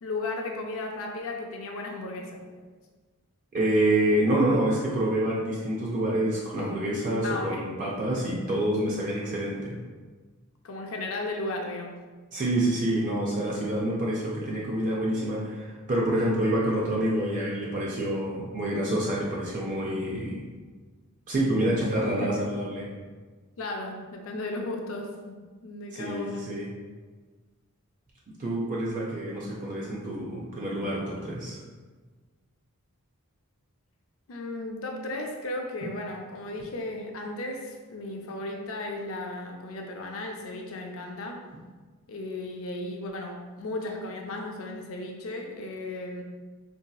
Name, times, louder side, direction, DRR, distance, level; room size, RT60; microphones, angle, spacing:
voice 1, 0.0-2.4 6.6-6.9 7.2-7.7 10.6-12.0 22.0-22.5 23.6-26.5 34.3-41.4 42.1-46.2, left 2 dB, 65° left, 2 dB, 0.5 m, -35 dB
voice 2, 3.5-9.8 12.3-20.4 21.3-22.9 25.9-26.7 28.3-31.6, right 1 dB, 35° right, -4 dB, 0.4 m, -27 dB
3.9 x 2.7 x 2.2 m, 1.4 s
head